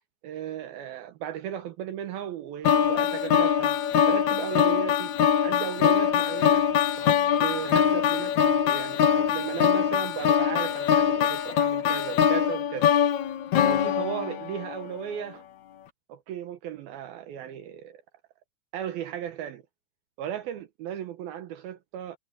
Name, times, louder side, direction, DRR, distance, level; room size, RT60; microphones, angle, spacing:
voice 1, 0.2-3.8 4.1-5.1 5.4-6.7 7.0-13.0 13.6-15.4 16.1-18.0 18.7-19.6 20.2-22.2, right 10 dB, 70° right, 2.6 m, -36 dB
sound 1, 2.6-14.8, left 8 dB, 60° left, 2.0 m, -23 dB
omnidirectional pair, 4.8 m